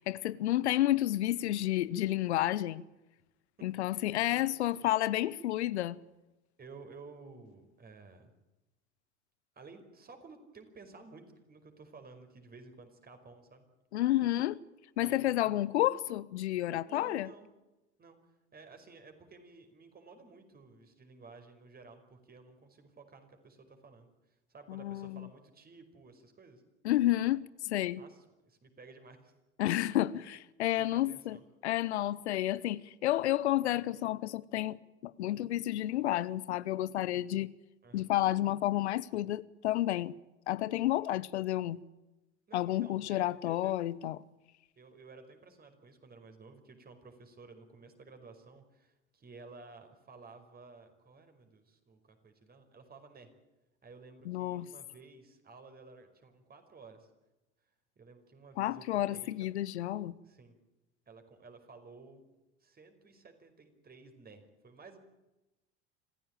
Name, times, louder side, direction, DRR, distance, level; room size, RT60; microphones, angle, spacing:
voice 1, 0.0-2.8 3.6-6.0 13.9-14.6 15.0-17.3 24.7-25.3 26.8-28.0 29.6-31.4 31.6-34.8 35.0-37.5 37.9-40.1 40.5-41.8 42.5-44.2 54.3-54.7 58.6-60.2, left 14 dB, 70° left, 0.8 m, -31 dB
voice 2, 3.9-4.5 6.6-8.3 9.6-13.7 15.0-15.6 16.8-17.5 18.0-26.6 28.0-29.3 30.2-30.3 30.7-31.4 37.8-38.1 42.5-43.8 44.8-53.3 53.8-57.1 58.0-59.3 60.2-60.6 61.1-62.2 62.6-65.0, right 4 dB, 25° right, 5.2 m, -54 dB
26.5 x 15.5 x 9.0 m
figure-of-eight pair, 75°, 34 cm